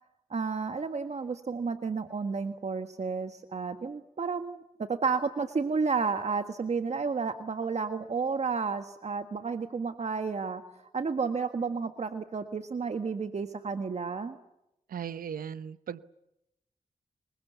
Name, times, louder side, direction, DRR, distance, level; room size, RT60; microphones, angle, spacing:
voice 1, 0.3-4.6 4.9-14.4, right 5 dB, 50° right, 7 dB, 1.7 m, -31 dB
voice 2, 14.9-16.0, right 8 dB, 85° right, 14 dB, 0.8 m, -37 dB
28.5 x 22.5 x 7.0 m, 0.83 s
cardioid pair, 70°, 14 cm